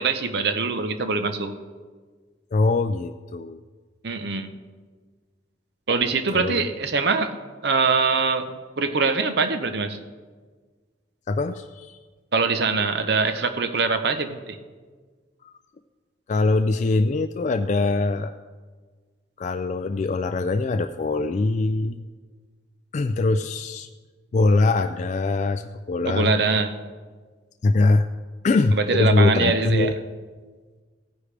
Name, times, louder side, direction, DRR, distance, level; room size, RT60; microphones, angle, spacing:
voice 1, 0.0-1.5 4.0-4.5 5.9-7.3 7.6-8.5 8.8-10.0 12.3-14.6 26.1-26.8 28.7-29.9, right 4 dB, 65° right, 8 dB, 0.8 m, -23 dB
voice 2, 2.5-3.6 6.3-6.7 11.3-12.0 15.4-15.5 16.3-18.3 19.4-22.0 22.9-23.9 24.3-26.3 27.6-28.1 28.4-29.9, left 3 dB, 40° left, 7 dB, 0.3 m, -22 dB
16.5 x 9.9 x 3.3 m, 1.5 s
head